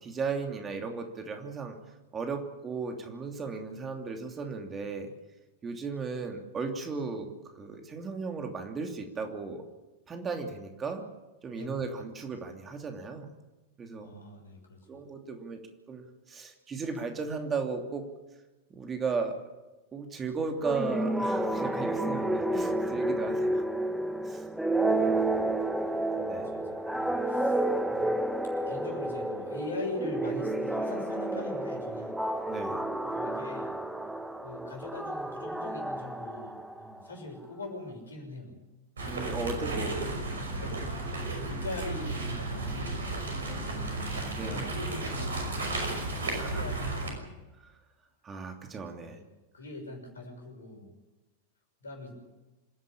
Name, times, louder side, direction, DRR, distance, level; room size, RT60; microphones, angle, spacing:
voice 1, 0.0-1.8 2.1-5.1 5.6-7.3 7.5-9.6 10.1-11.0 11.4-13.3 13.8-14.1 14.9-15.6 15.9-18.0 18.7-19.4 19.9-23.6 24.2-24.4 26.2-26.5 32.5-32.9 39.0-39.9 40.3-40.8 43.4-44.6 46.4-46.5 48.2-49.2, right 4 dB, 20° right, 4 dB, 3.0 m, -36 dB
voice 2, 14.0-15.0 24.9-25.4 26.5-27.6 27.9-28.1 28.7-32.2 33.0-33.8 34.4-38.5 40.6-40.9 41.5-43.4 43.8-44.2 44.4-45.8 46.3-47.4 49.0-49.2 49.5-50.9 51.8-52.1, left 2 dB, 70° left, 2 dB, 6.3 m, -42 dB
sound 1, 20.6-37.0, right 1 dB, ahead, 1.3 m, -30 dB
sound 2, 39.0-47.1, right 2 dB, 70° right, 5.7 m, -33 dB
26.5 x 11.0 x 10.0 m, 1.1 s
figure-of-eight pair, 90°, 0 cm